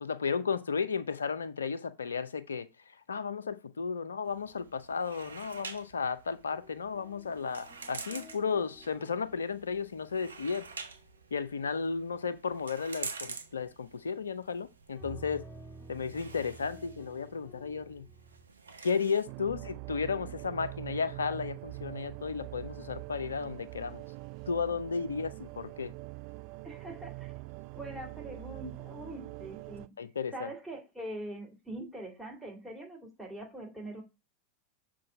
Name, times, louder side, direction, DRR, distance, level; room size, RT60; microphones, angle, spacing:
voice 1, 0.0-2.7 3.1-10.7 11.3-15.4 15.9-18.0 18.8-24.0 24.5-25.9 30.0-30.5, left 5 dB, 80° left, 0.5 m, -34 dB
sound 1, 4.2-19.2, right 4 dB, 80° right, 0.7 m, -48 dB
sound 2, 6.5-11.0 11.6-12.0 14.9-18.5, right 3 dB, 20° left, 1.7 m, -52 dB
sound 3, 19.3-29.9, right 24 dB, 50° right, 0.4 m, -44 dB
voice 2, 26.6-27.4 27.7-29.9 30.3-34.0, right 1 dB, 5° right, 3.0 m, -43 dB
6.5 x 3.9 x 5.3 m
figure-of-eight pair, 90°, 0 cm